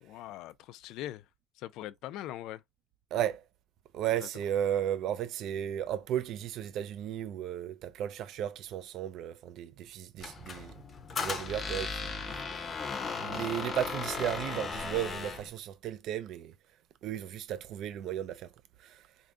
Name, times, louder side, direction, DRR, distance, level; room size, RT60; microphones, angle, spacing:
voice 1, 0.0-1.3 1.6-2.6 4.2-4.3, left 14 dB, 60° left, 0.3 m, -41 dB
voice 2, 3.1-3.4 3.9-10.7 11.2-12.4 13.2-16.5 17.0-18.5 18.8-19.0, right 11 dB, 50° right, 0.4 m, -34 dB
Squeak, 10.2-15.5, left 4 dB, 25° left, 0.6 m, -36 dB
3.6 x 2.2 x 3.6 m
cardioid pair, 170°, 0 cm